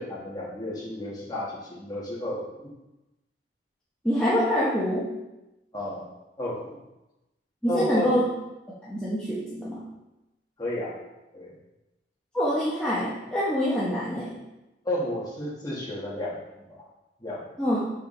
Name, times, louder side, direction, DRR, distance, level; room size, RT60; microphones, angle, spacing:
voice 1, 0.0-2.4 5.7-6.1 6.4-6.8 7.7-8.1 10.6-11.0 11.3-11.5 14.8-16.4 16.8-16.9 17.2-17.6, left 1 dB, 20° left, -5 dB, 1.5 m, -32 dB
voice 2, 4.0-5.1 7.6-8.2 8.9-9.8 12.3-14.3 17.6-17.8, equal, 5° left, -10 dB, 0.9 m, -25 dB
6.8 x 4.9 x 3.2 m, 0.98 s
head